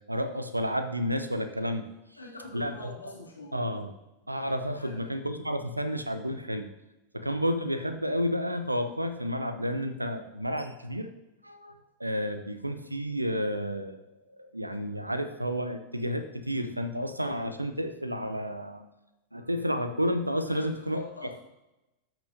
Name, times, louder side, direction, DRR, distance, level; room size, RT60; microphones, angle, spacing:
voice 1, 0.1-1.9 2.5-2.9 3.5-3.9 4.3-6.7 7.1-11.1 11.4-14.0 14.4-18.8 19.3-21.0, equal, 85° right, 9 dB, 0.7 m, -31 dB
voice 2, 2.2-3.6 4.8-5.1 20.5-21.3, left 2 dB, 80° left, -2 dB, 2.0 m, -44 dB
13.5 x 5.9 x 2.8 m, 0.99 s
figure-of-eight pair, 90°, 0 cm